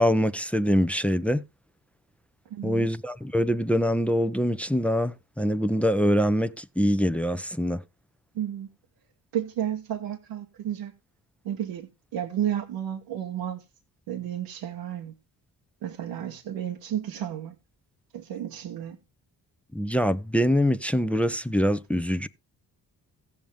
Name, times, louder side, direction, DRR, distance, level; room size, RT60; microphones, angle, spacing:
voice 1, 0.0-1.4 2.6-7.8 19.7-22.3, equal, 5° left, 0.8 m, -24 dB
voice 2, 2.5-2.9 8.3-8.7 9.3-10.9 11.4-13.6 14.1-15.1 15.8-17.5 18.1-19.0, right 10 dB, 80° right, 1.3 m, -32 dB
15.0 x 7.2 x 3.4 m
supercardioid pair, 50°, 42 cm